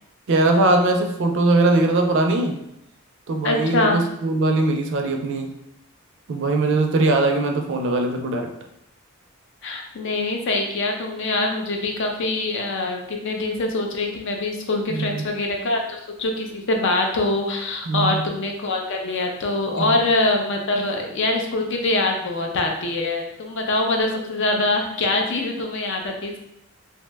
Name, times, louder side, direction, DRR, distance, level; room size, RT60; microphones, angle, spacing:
voice 1, 0.3-2.6 3.3-5.5 6.3-8.5 14.9-15.3 17.9-18.2 19.8-19.9, right 2 dB, 60° right, 4 dB, 0.4 m, -20 dB
voice 2, 3.4-4.0 9.6-26.4, left 2 dB, 60° left, 2 dB, 0.5 m, -24 dB
2.7 x 2.1 x 3.3 m, 0.79 s
head